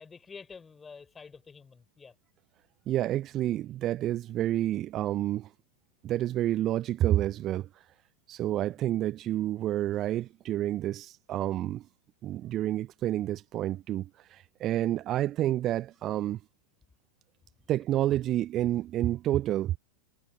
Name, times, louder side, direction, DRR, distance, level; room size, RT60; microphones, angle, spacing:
voice 1, 0.0-2.1 8.4-8.7, left 5 dB, 15° left, 4.1 m, -49 dB
voice 2, 2.9-5.5 6.0-7.8 8.3-11.8 12.2-16.4 17.7-19.7, right 13 dB, 35° right, 0.6 m, -29 dB
figure-of-eight pair, 90°, 0 cm